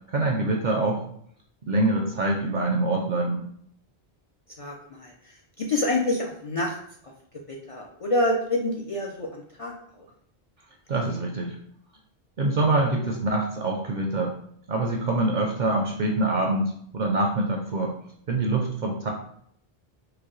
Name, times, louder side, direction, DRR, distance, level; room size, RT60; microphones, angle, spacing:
voice 1, 0.1-1.0 1.7-3.4 10.9-11.6 12.4-14.3 14.7-17.9 18.3-19.1, right 2 dB, 55° right, 1 dB, 0.5 m, -25 dB
voice 2, 4.6-6.8 7.5-10.0 10.9-11.2, left 1 dB, 50° left, -1 dB, 0.4 m, -28 dB
4.8 x 2.1 x 3.0 m, 0.66 s
omnidirectional pair, 1.1 m